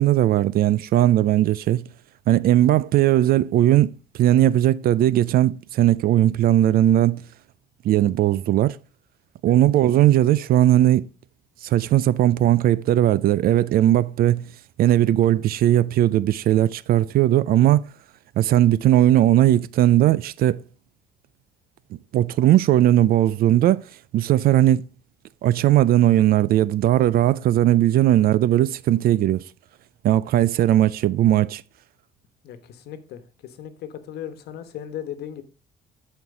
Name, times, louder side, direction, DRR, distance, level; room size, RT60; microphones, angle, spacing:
voice 1, 0.0-1.8 2.3-3.9 4.2-7.2 7.8-8.8 9.4-11.1 11.6-14.4 14.8-17.8 18.4-20.6 22.1-23.8 24.1-24.9 25.4-29.4 30.0-31.6, right 13 dB, 60° right, 0.5 m, -18 dB
voice 2, 32.4-35.4, left 10 dB, 75° left, 1.2 m, -37 dB
11.0 x 4.5 x 4.8 m
cardioid pair, 110°, 17 cm